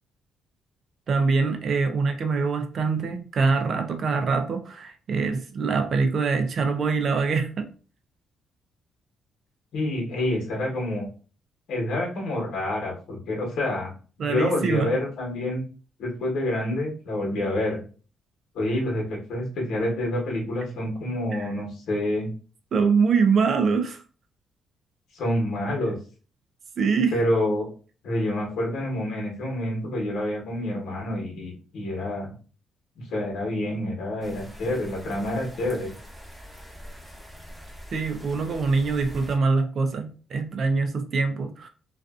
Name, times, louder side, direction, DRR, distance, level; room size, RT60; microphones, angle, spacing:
voice 1, 1.1-7.7 14.2-15.0 21.3-21.5 22.7-24.0 26.8-27.1 37.9-41.7, right 4 dB, 55° right, 0.5 m, -24 dB
voice 2, 9.7-11.1 11.7-13.9 14.2-15.6 16.0-17.8 18.5-22.3 25.1-26.0 27.1-27.7 28.0-32.3 33.1-35.9, left 1 dB, 75° left, 1.1 m, -27 dB
sound 1, 34.2-39.4, equal, ahead, 1.0 m, -43 dB
2.5 x 2.4 x 2.4 m
cardioid pair, 90°, 0 cm